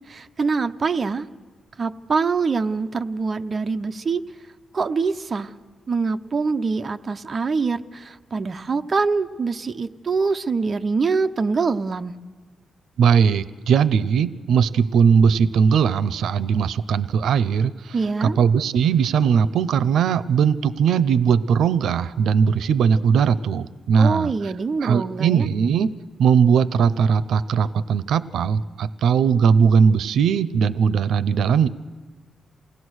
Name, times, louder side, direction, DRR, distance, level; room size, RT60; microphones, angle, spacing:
voice 1, 0.1-1.3 1.8-4.2 4.7-5.5 5.9-12.2 17.9-18.4 24.0-25.5, right 4 dB, 35° right, 7 dB, 0.7 m, -24 dB
voice 2, 13.0-18.0 18.2-24.5 24.8-25.9 26.2-31.7, right 6 dB, 85° right, 15 dB, 0.6 m, -19 dB
28.5 x 17.5 x 6.4 m, 1.4 s
wide cardioid pair, 145°, 0 cm